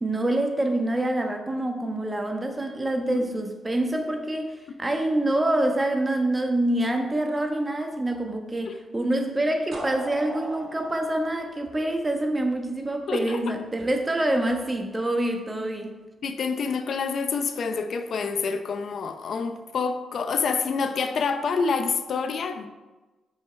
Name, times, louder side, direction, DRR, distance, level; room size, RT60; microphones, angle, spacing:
voice 1, 0.0-15.9, right 1 dB, 20° right, 4 dB, 1.2 m, -26 dB
sound 1, 9.7-12.6, right 2 dB, 60° right, 1.6 m, -38 dB
voice 2, 13.1-13.4 16.2-22.7, left 5 dB, 65° left, 8 dB, 0.6 m, -27 dB
6.3 x 6.2 x 4.5 m, 1.2 s
cardioid pair, 65°, 0 cm